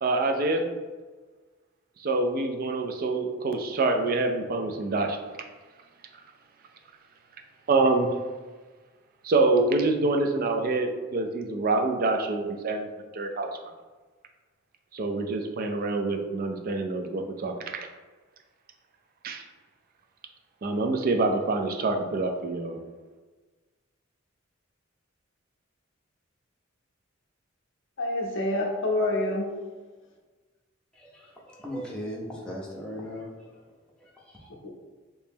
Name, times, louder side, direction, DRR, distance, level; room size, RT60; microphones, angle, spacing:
voice 1, 0.0-0.7 2.0-5.2 7.7-8.1 9.2-12.9 13.1-13.5 14.9-17.9 19.2-19.4 20.6-22.8, right 3 dB, 45° right, 5 dB, 0.4 m, -26 dB
voice 2, 28.0-29.6 34.6-34.7, left 1 dB, 65° left, 0 dB, 0.6 m, -27 dB
voice 3, 30.9-33.7 34.0-34.5, equal, 5° left, -5 dB, 0.6 m, -39 dB
3.1 x 2.8 x 3.5 m, 1.3 s
head